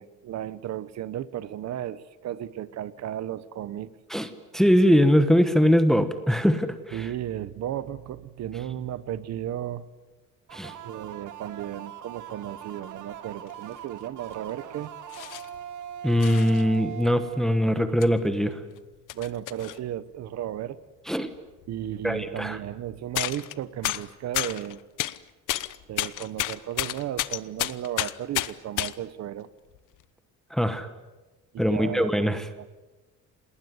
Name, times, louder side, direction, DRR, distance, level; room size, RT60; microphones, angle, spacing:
voice 1, 0.0-3.9 6.9-9.9 10.8-14.9 19.1-20.8 21.7-24.8 25.9-29.5 31.5-32.3 32.6-32.7, right 11 dB, 60° right, 16 dB, 1.1 m, -34 dB
voice 2, 4.5-7.0 10.5-10.7 16.0-18.6 21.1-21.3 22.0-22.6 30.5-30.9 31.6-32.5, equal, ahead, 9 dB, 1.2 m, -22 dB
sound 1, 10.5-18.1, right 9 dB, 75° right, 2.3 m, -41 dB
sound 2, 13.5-13.6 14.3-14.5 15.1-15.6 16.2-16.6 17.4-17.5 18.0-18.1 18.5-19.8 21.3-21.4 21.6-21.8 23.1-23.5 23.8-25.2 25.5-28.9 29.7-30.0, left 16 dB, 80° left, 1.0 m, -31 dB
28.0 x 20.0 x 9.6 m, 1.2 s
cardioid pair, 175°, 31 cm